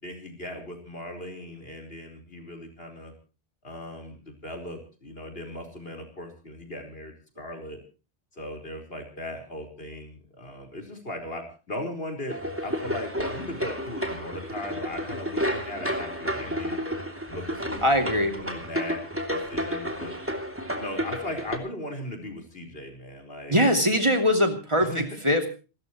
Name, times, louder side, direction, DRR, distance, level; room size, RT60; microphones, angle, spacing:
voice 1, 0.0-3.1 3.6-7.8 8.3-16.8 17.3-19.0 19.3-20.1 20.7-23.6 24.8-25.2, left 1 dB, 65° left, 5 dB, 4.9 m, -38 dB
sound 1, 12.3-21.6, equal, 10° right, 3.0 m, -31 dB
voice 2, 17.8-18.3 23.5-25.5, equal, 30° right, 5 dB, 2.9 m, -22 dB
29.0 x 14.0 x 3.1 m, 0.35 s
omnidirectional pair, 1.1 m